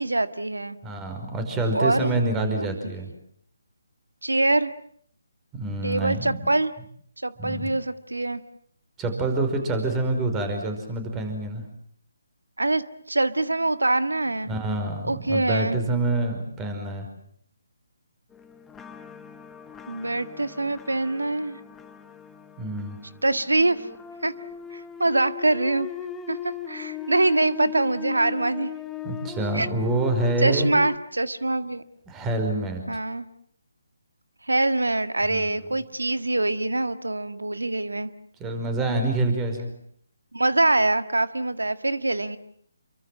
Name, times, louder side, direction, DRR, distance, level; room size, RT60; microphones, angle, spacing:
voice 1, 0.0-0.8 1.7-2.3 2.6-2.7 4.2-4.7 5.8-6.7 7.2-8.4 12.6-14.5 15.0-15.8 19.9-21.6 23.2-23.9 24.2-24.3 24.7-25.9 26.3-28.7 29.5-29.7 30.4-31.8 32.9-33.3 34.5-38.1 40.3-42.4, right 2 dB, 85° right, 12 dB, 1.8 m, -24 dB
voice 2, 0.8-3.1 5.5-6.4 7.4-7.7 9.0-11.6 14.5-17.1 22.6-23.0 29.0-30.7 32.1-32.8 35.3-35.5 38.4-39.7, right 2 dB, 15° right, 6 dB, 5.2 m, -26 dB
sound 1, 18.3-31.0, left 8 dB, 10° left, 1.3 m, -39 dB
28.5 x 24.0 x 7.5 m, 0.63 s
figure-of-eight pair, 145°, 0 cm